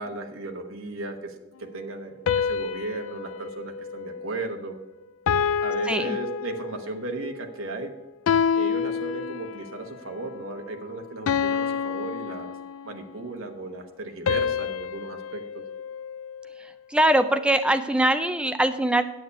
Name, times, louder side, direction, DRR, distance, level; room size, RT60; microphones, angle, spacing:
voice 1, 0.0-4.8 5.6-7.9 8.6-12.5 12.8-15.6, right 2 dB, 75° right, 4 dB, 1.2 m, -35 dB
sound 1, 2.3-4.8 5.3-7.0 8.3-9.8 11.3-13.1 14.3-16.6, left 7 dB, 75° left, 0.4 m, -28 dB
voice 2, 16.9-19.0, right 1 dB, 5° right, 9 dB, 0.4 m, -22 dB
9.4 x 8.2 x 4.7 m, 1.1 s
head